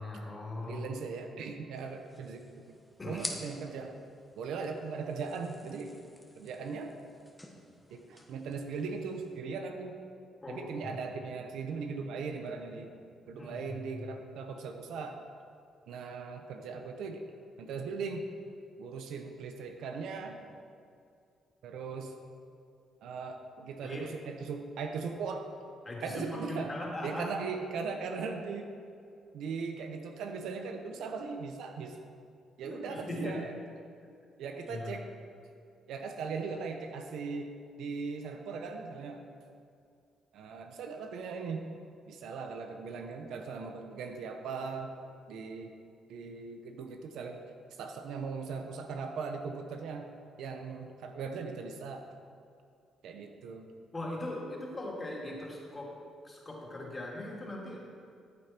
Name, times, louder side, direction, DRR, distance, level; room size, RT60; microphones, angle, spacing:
voice 1, 0.0-0.9 3.0-3.3 10.4-10.9 13.4-14.0 23.8-24.0 25.8-27.3 32.6-33.4 34.6-34.9 53.9-55.9 56.2-58.0, left 1 dB, 25° left, -3 dB, 3.0 m, -40 dB
voice 2, 0.7-2.7 3.1-4.0 4.4-6.0 6.3-7.0 7.9-10.0 10.5-12.9 13.3-15.2 15.9-17.2 17.6-18.2 18.8-20.4 21.6-22.1 23.0-25.5 26.0-26.7 27.0-28.7 29.3-32.0 32.6-33.6 34.4-35.1 35.9-37.5 37.8-39.2 40.3-41.6 42.1-45.0 45.3-45.7 46.1-47.4 47.8-50.1 50.4-52.1 53.0-53.7, right 5 dB, 80° right, 5 dB, 1.0 m, -39 dB
sound 1, 1.8-9.4, left 1 dB, 5° left, 1.4 m, -48 dB
14.0 x 8.1 x 4.5 m, 2.4 s
cardioid pair, 90°, 0 cm